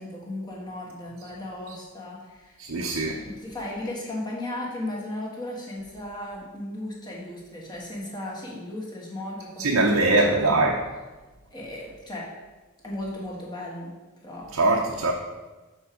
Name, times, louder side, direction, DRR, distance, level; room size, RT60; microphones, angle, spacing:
voice 1, 0.0-2.6 3.2-10.1 10.4-10.6 11.5-12.3 12.8-13.9 14.2-14.5, left 1 dB, 20° left, -4 dB, 1.6 m, -36 dB
voice 2, 2.6-3.2 9.6-10.8 14.5-15.1, right 2 dB, 70° right, 0 dB, 0.7 m, -22 dB
6.9 x 4.5 x 5.0 m, 1.2 s
head